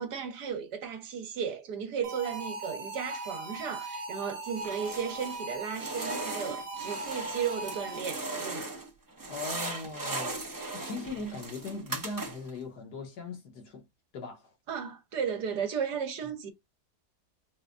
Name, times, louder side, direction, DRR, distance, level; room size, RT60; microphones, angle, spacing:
voice 1, 0.0-8.7 14.7-16.5, right 7 dB, 75° right, 1.5 m, -35 dB
sound 1, 2.0-8.3, right 2 dB, 45° right, 0.9 m, -39 dB
sound 2, 4.6-5.4 5.7-8.9 9.2-12.6, right 2 dB, 25° right, 0.5 m, -38 dB
voice 2, 9.3-10.4 10.7-13.9 14.1-14.5, left 3 dB, 70° left, 1.7 m, -39 dB
4.8 x 2.2 x 2.5 m
omnidirectional pair, 1.8 m